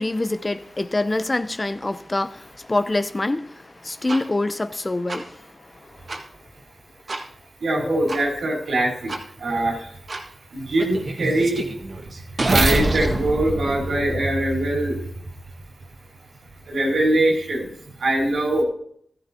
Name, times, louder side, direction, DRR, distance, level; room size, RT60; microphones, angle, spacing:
voice 1, 0.0-6.0 7.8-8.0, left 2 dB, 30° left, 0.6 m, -26 dB
sound 1, 4.1-4.2 5.1-5.2 6.1-6.2 7.1-7.2 8.1-8.2 9.1-9.2 10.1-10.2 10.8-14.7, right 2 dB, 55° right, 1.6 m, -25 dB
voice 2, 7.6-9.1 9.4-10.0 10.5-11.7 12.5-15.0 16.7-17.7 18.0-18.6, right 1 dB, 90° right, 3.7 m, -22 dB
14.5 x 13.5 x 2.8 m
cardioid pair, 60°, 0 cm